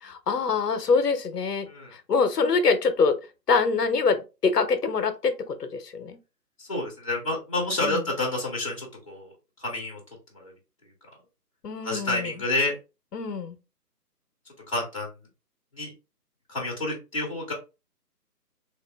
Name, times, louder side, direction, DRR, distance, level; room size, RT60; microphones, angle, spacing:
voice 1, 0.0-3.2 3.5-6.2 7.8-8.0 11.6-12.3 13.1-13.6, left 4 dB, 75° left, 0.7 m, -25 dB
voice 2, 6.6-9.3 9.6-10.0 10.3-10.5 11.8-12.7 14.7-15.1 15.7-15.9 16.5-17.5, left 2 dB, 20° left, 0.7 m, -29 dB
3.2 x 2.2 x 3.1 m
figure-of-eight pair, 160°, 49 cm